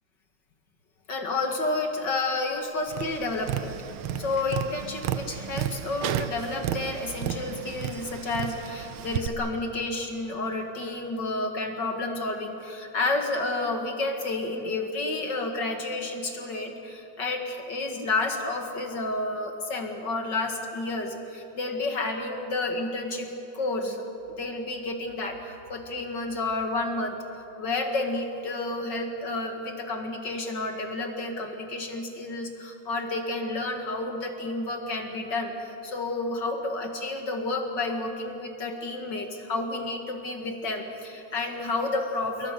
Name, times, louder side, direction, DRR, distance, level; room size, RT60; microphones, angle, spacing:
voice 1, 1.1-3.8 4.2-23.3 23.5-24.0 24.4-27.2 27.6-42.5, left 2 dB, 40° left, 4 dB, 2.3 m, -30 dB
Tap, 2.9-9.3, right 10 dB, 85° right, 1.1 m, -33 dB
28.5 x 22.0 x 6.8 m, 2.8 s
omnidirectional pair, 3.5 m